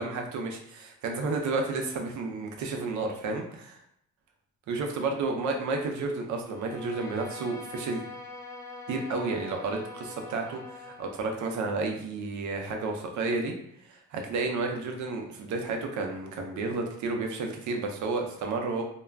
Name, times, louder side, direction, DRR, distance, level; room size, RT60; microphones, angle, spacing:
voice 1, 0.0-3.8 4.7-8.0 8.9-13.5 13.8-18.8, right 3 dB, 75° right, 3 dB, 0.6 m, -31 dB
Bowed string instrument, 6.4-11.4, left 3 dB, 10° left, 0.4 m, -43 dB
2.3 x 2.1 x 3.3 m, 0.74 s
cardioid pair, 90°, 30 cm